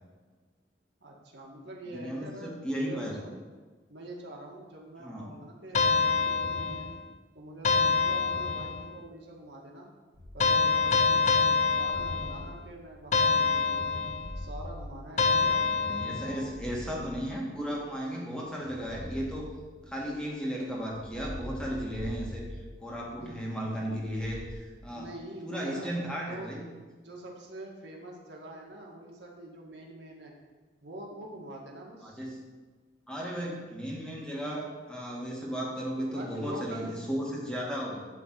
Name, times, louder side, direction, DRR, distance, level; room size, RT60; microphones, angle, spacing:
voice 1, 1.0-3.4 3.9-6.9 7.3-9.9 10.3-13.9 14.4-15.6 16.2-16.6 23.2-23.4 24.9-26.5 27.0-30.3 30.8-32.2 36.1-36.9, right 1 dB, 85° right, -1 dB, 2.0 m, -45 dB
voice 2, 1.9-3.2 5.0-5.3 15.5-19.5 19.9-25.1 25.4-26.7 32.0-32.5 33.1-38.1, equal, 5° left, -3 dB, 1.8 m, -35 dB
sound 1, 5.7-7.1 7.6-9.0 10.4-12.6 13.1-14.4 15.2-16.5, left 4 dB, 40° left, 0.5 m, -26 dB
sound 2, 10.1-10.8 11.6-13.3 13.9-15.7 16.2-17.8 18.6-20.2 20.8-23.3 23.9-24.5, left 1 dB, 55° right, 2.0 m, -44 dB
11.5 x 3.9 x 7.5 m, 1.4 s
head